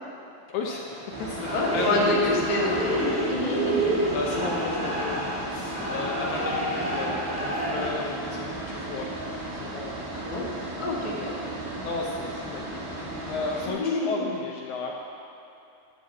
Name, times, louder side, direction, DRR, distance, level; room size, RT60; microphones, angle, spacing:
voice 1, 0.5-2.5 4.1-9.2 9.5-10.1 10.6-10.8 11.8-14.9, left 3 dB, 75° left, -1 dB, 1.9 m, -34 dB
sound 1, 0.6-7.9, right 1 dB, 5° right, 1.6 m, -29 dB
sound 2, 1.1-13.7, right 2 dB, 85° right, 3.8 m, -35 dB
voice 2, 1.5-3.9 10.1-10.5 10.8-11.3 13.6-14.2, left 2 dB, 35° left, -5 dB, 0.7 m, -27 dB
12.0 x 5.5 x 7.4 m, 2.8 s
omnidirectional pair, 4.1 m